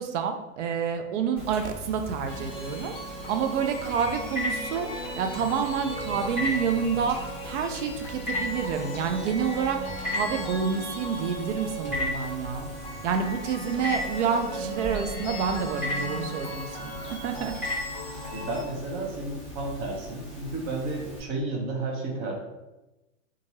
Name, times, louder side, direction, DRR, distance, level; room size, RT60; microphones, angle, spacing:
voice 1, 0.0-12.7 13.0-17.5 18.1-18.3, right 6 dB, 65° right, 6 dB, 0.6 m, -29 dB
Telephone, 1.4-21.2, left 1 dB, 5° right, 1.2 m, -37 dB
sound 1, 2.3-18.6, equal, 15° left, 0.7 m, -37 dB
voice 2, 18.3-22.3, right 2 dB, 35° right, 0 dB, 0.7 m, -32 dB
2.7 x 2.5 x 2.9 m, 1.0 s
hypercardioid pair, 125°, 38 cm